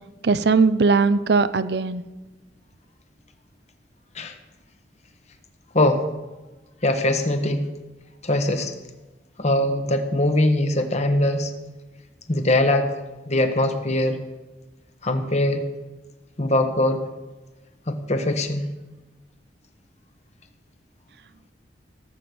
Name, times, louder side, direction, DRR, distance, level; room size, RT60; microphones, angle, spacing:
voice 1, 0.2-2.0, right 4 dB, 65° right, 13 dB, 0.6 m, -19 dB
voice 2, 6.8-7.6 8.2-8.7 9.4-11.5 12.3-12.9 13.3-14.2 15.0-15.7 16.4-17.0 17.9-18.6, left 1 dB, 40° left, 7 dB, 1.3 m, -21 dB
17.0 x 7.9 x 6.9 m, 1.1 s
head